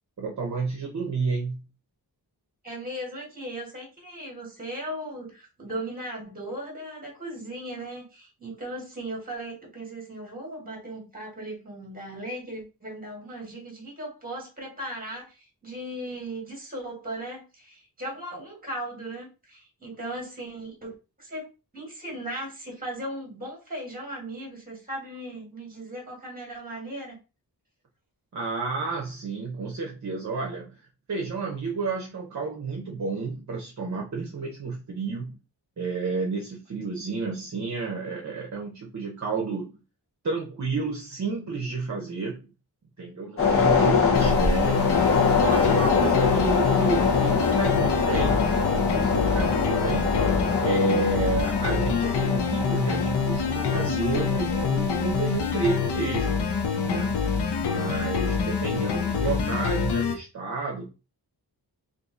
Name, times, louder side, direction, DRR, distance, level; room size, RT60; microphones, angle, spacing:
voice 1, 0.2-1.7 28.3-35.4 35.8-39.8 40.2-42.5 43.0-44.9 45.4-48.5 48.7-50.3 50.6-56.3 56.8-57.1 57.6-60.9, right 4 dB, 45° right, -1 dB, 0.8 m, -31 dB
voice 2, 2.6-21.5 21.7-27.2, right 1 dB, 20° right, 0 dB, 1.5 m, -37 dB
sound 1, 43.4-57.9 58.3-58.4, left 5 dB, 35° left, 0.8 m, -25 dB
sound 2, 44.1-60.1, left 6 dB, 80° left, 0.6 m, -26 dB
2.8 x 2.6 x 3.6 m, 0.30 s
wide cardioid pair, 160°, 40 cm